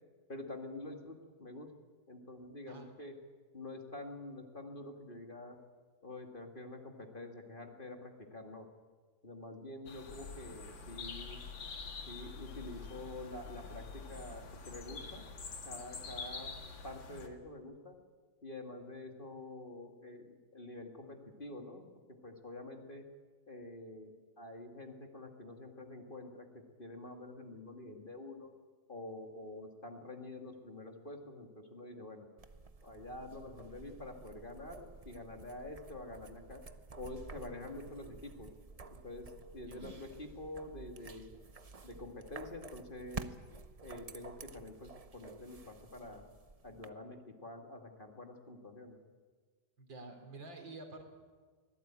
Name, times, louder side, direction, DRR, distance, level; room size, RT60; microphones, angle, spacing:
voice 1, 0.3-1.7 2.1-3.1 3.5-5.6 6.0-8.7 9.2-11.4 12.1-15.3 15.7-16.5 16.8-18.0 18.4-21.8 22.2-23.0 23.5-28.5 28.9-32.3 32.8-36.6 37.0-38.5 39.0-41.3 41.8-43.3 43.8-46.2 46.6-49.0, left 2 dB, 25° left, 3 dB, 2.4 m, -47 dB
sound 1, 9.9-17.3, left 4 dB, 85° left, 2.9 m, -46 dB
sound 2, 32.4-46.9, right 4 dB, 40° right, 0.5 m, -51 dB
voice 2, 49.8-51.0, right 2 dB, 75° right, 5 dB, 4.0 m, -49 dB
24.5 x 19.0 x 9.0 m, 1.5 s
omnidirectional pair, 2.0 m